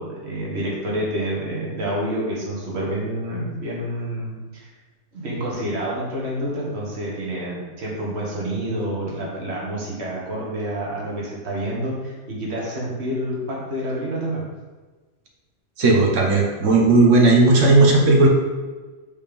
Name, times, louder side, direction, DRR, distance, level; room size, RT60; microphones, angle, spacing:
voice 1, 0.0-4.7 5.1-14.4, right 1 dB, 60° right, -4 dB, 1.7 m, -28 dB
voice 2, 15.8-18.3, right 2 dB, 80° right, 0 dB, 1.4 m, -15 dB
5.3 x 3.5 x 5.1 m, 1.3 s
omnidirectional pair, 1.3 m